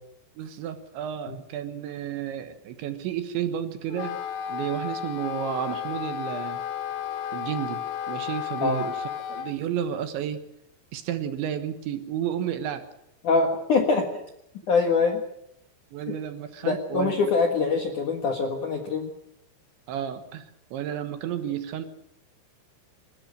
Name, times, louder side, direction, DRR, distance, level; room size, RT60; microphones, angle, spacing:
voice 1, 0.4-4.2 4.5-6.6 7.3-9.0 9.3-10.4 10.9-12.9 15.9-17.1 19.9-21.9, right 9 dB, 70° right, 9 dB, 3.3 m, -32 dB
Wind instrument woodwind instrument, 3.9-9.5, left 9 dB, 80° left, 4.3 m, -33 dB
voice 2, 13.2-14.2 14.7-15.2 16.6-19.1, left 4 dB, 60° left, 4 dB, 2.1 m, -24 dB
27.0 x 13.5 x 9.2 m, 0.79 s
omnidirectional pair, 6.0 m